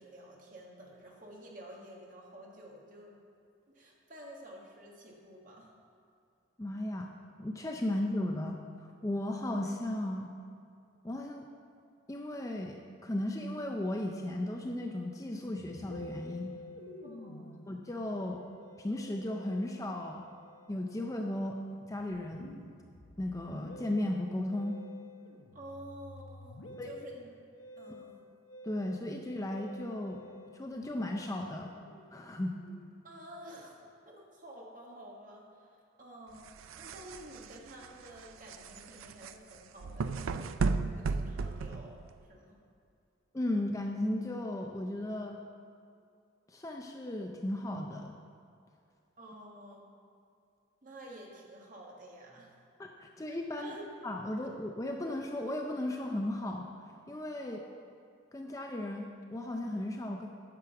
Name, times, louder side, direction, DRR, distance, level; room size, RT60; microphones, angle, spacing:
voice 1, 0.0-3.2 3.7-5.7 17.0-17.5 25.5-27.3 27.8-28.2 33.0-36.4 36.8-42.4 49.2-49.9 50.8-52.6 53.6-53.8 57.4-57.6, right 1 dB, 40° right, -1 dB, 1.5 m, -50 dB
voice 2, 6.6-7.1 7.4-10.3 11.0-11.5 12.1-16.6 17.7-18.4 18.8-20.2 20.7-21.6 21.9-22.5 23.2-24.8 26.8-26.9 28.6-30.2 30.5-31.7 32.1-32.6 43.3-45.4 46.5-48.1 52.8-53.8 54.0-56.7 57.1-57.6 58.3-60.3, left 1 dB, 15° left, 2 dB, 0.4 m, -35 dB
Musical instrument, 15.5-33.1, left 1 dB, 75° left, 0.7 m, -51 dB
sound 1, 36.4-42.3, right 4 dB, 85° right, 0.4 m, -35 dB
9.9 x 6.3 x 5.8 m, 2.5 s
head